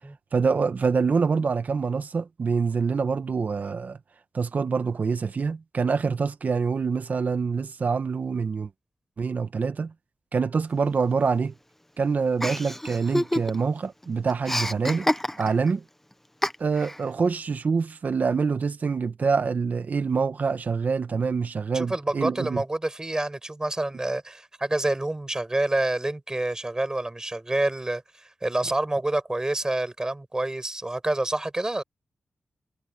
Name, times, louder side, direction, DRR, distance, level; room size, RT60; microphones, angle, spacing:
voice 1, 0.3-4.0 4.3-8.7 9.2-9.9 10.3-11.5 12.0-15.1 15.4-15.8 16.6-22.6, right 5 dB, 55° right, 1.4 m, -25 dB
Chuckle chortle, 12.4-13.8 14.0-15.7 16.4-17.0, left 1 dB, 10° left, 1.0 m, -28 dB
voice 2, 21.7-31.8, right 2 dB, 20° right, 7.4 m, -28 dB
cardioid pair, 80°, 3 cm